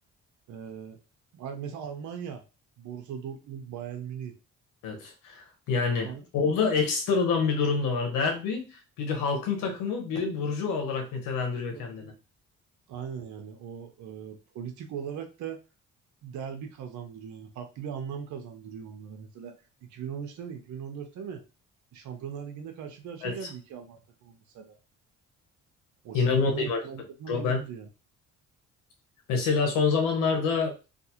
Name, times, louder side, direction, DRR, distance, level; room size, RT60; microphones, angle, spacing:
voice 1, 0.5-1.0 1.3-2.4 2.8-4.3 6.0-6.2 11.7-11.8 12.9-15.6 16.2-19.6 19.9-21.4 21.9-24.8 26.0-27.9, right 7 dB, 65° right, 5 dB, 0.7 m, -39 dB
voice 2, 4.8-12.1 23.2-23.3 26.1-26.8 27.3-27.6 29.3-30.7, left 5 dB, 85° left, 3 dB, 1.0 m, -27 dB
2.5 x 2.4 x 2.8 m, 0.30 s
supercardioid pair, 75°, 32 cm